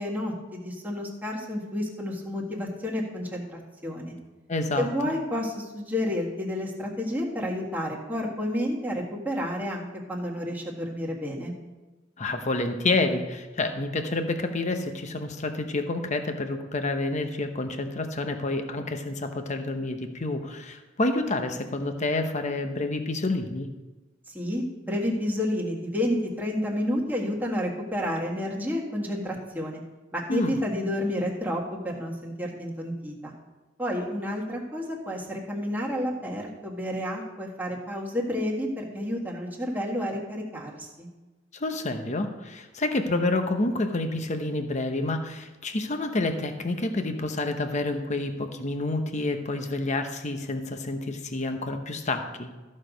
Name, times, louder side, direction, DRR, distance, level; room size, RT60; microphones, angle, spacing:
voice 1, 0.0-4.1 4.8-11.5 24.3-29.8 30.1-33.3 33.8-41.1, left 1 dB, 10° right, -2 dB, 1.7 m, -30 dB
voice 2, 4.5-4.9 12.2-23.7 30.3-30.5 41.5-52.5, left 2 dB, 40° left, 6 dB, 0.9 m, -28 dB
13.5 x 6.5 x 5.1 m, 1.2 s
head